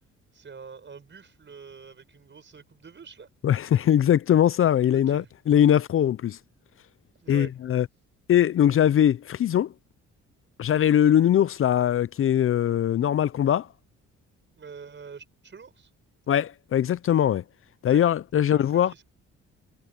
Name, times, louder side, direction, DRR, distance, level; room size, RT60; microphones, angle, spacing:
voice 1, 0.3-3.3 4.9-5.3 7.2-7.5 14.6-15.9 17.8-18.0 18.4-19.0, right 5 dB, 40° right, 5.5 m, -45 dB
voice 2, 3.4-6.4 7.3-7.8 8.3-9.7 10.6-13.7 16.3-17.4 17.8-18.9, left 10 dB, 45° left, 0.5 m, -21 dB
cardioid pair, 90°, 30 cm